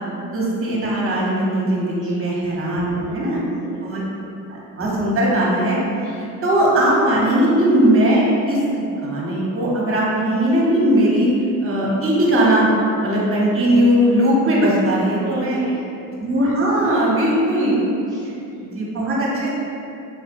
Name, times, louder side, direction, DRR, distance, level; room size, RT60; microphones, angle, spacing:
voice 1, 0.3-3.4 3.8-4.0 4.5-5.8 6.4-11.3 11.6-12.7 13.0-15.6 16.2-17.7 18.6-19.5, right 1 dB, 30° right, -4 dB, 0.9 m, -19 dB
voice 2, 6.0-6.3 15.2-16.1 16.4-16.6 18.1-19.0, right 1 dB, 10° right, -9 dB, 0.3 m, -38 dB
4.0 x 2.0 x 2.6 m, 2.7 s
supercardioid pair, 75°, 44 cm